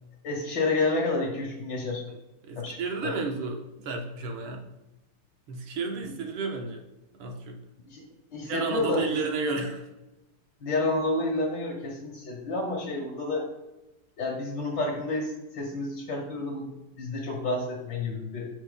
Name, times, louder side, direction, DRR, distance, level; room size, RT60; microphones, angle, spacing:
voice 1, 0.2-2.0 2.6-2.8 3.0-3.1 7.9-8.0 8.3-9.0 10.6-13.5 14.2-18.5, left 2 dB, 55° left, -2 dB, 2.1 m, -29 dB
voice 2, 2.4-4.6 5.5-6.8 7.2-7.6 8.4-9.8, right 4 dB, 85° right, 2 dB, 1.9 m, -32 dB
13.5 x 5.6 x 2.2 m, 1.0 s
omnidirectional pair, 2.4 m